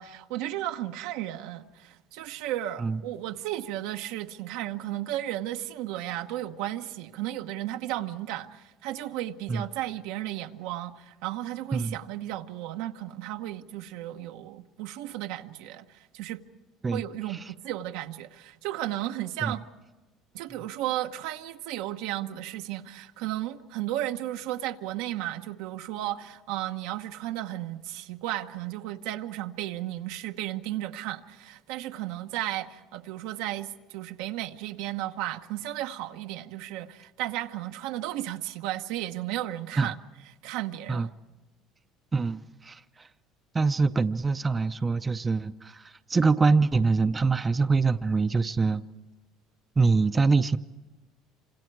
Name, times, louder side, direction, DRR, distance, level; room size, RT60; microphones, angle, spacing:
voice 1, 0.0-16.4 16.9-19.6 20.3-40.0 40.4-41.1, right 14 dB, 85° right, 1.0 m, -34 dB
voice 2, 42.1-42.8 43.5-48.8 49.8-50.6, right 4 dB, 20° right, 0.6 m, -24 dB
27.0 x 26.0 x 4.7 m
supercardioid pair, 110°, 0 cm